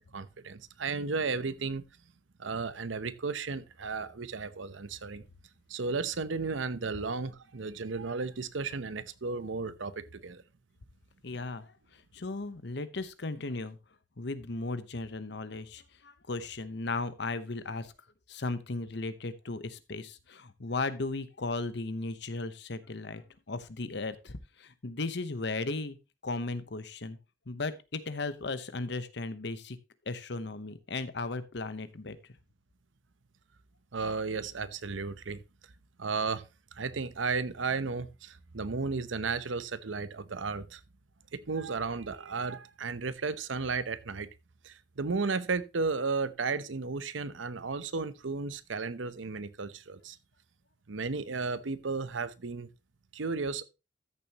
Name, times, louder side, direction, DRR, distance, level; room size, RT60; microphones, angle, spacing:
voice 1, 0.1-1.8 2.4-5.2 5.7-10.4 33.9-35.4 36.0-36.4 36.8-40.8 41.3-44.3 44.6-50.2 50.9-52.7 53.1-53.6, right 4 dB, 85° right, 0.8 m, -34 dB
voice 2, 11.2-13.8 14.2-17.9 18.3-23.2 23.5-26.0 26.2-27.2 27.5-29.8 30.1-32.2, left 3 dB, 60° left, 0.9 m, -36 dB
13.5 x 6.9 x 2.9 m
head